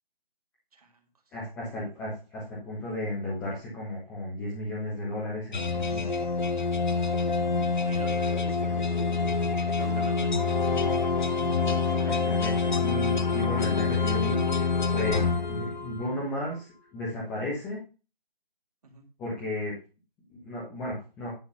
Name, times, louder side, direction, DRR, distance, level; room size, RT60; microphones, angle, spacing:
voice 1, 0.7-1.0 5.9-6.4 7.3-8.7 9.0-11.2 15.0-15.2 18.8-19.0, right 4 dB, 40° right, 5 dB, 2.0 m, -49 dB
voice 2, 1.3-6.1 12.0-14.7 14.9-15.2 15.5-17.8 19.2-19.7 20.3-21.3, left 1 dB, 5° left, -6 dB, 1.4 m, -34 dB
sound 1, 5.5-16.2, left 4 dB, 50° left, 1.0 m, -26 dB
Acoustic guitar, 6.9-12.3, right 3 dB, 65° right, 1.6 m, -44 dB
11.0 x 3.8 x 6.9 m, 0.33 s
figure-of-eight pair, 155°, 30 cm